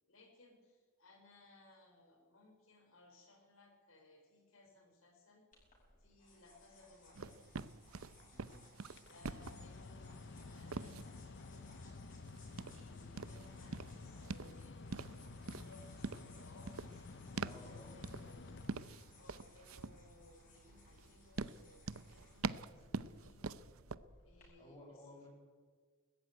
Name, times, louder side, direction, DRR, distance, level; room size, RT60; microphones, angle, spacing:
voice 1, 0.1-5.5 6.0-7.4 9.1-12.0 12.7-15.2 15.5-16.8 17.3-18.8 19.2-23.5 24.2-25.3, left 2 dB, 80° left, 3 dB, 4.2 m, -63 dB
sound 1, 5.5-24.4, left 2 dB, 35° left, 7.6 m, -64 dB
sound 2, 7.1-24.0, right 4 dB, 90° right, 0.7 m, -46 dB
voice 2, 8.3-8.7 17.4-18.4 24.6-25.3, left 1 dB, 20° left, -2 dB, 7.0 m, -57 dB
Mechanical fan, 8.9-19.4, left 3 dB, 55° left, 0.6 m, -52 dB
19.5 x 14.5 x 9.3 m, 1.5 s
head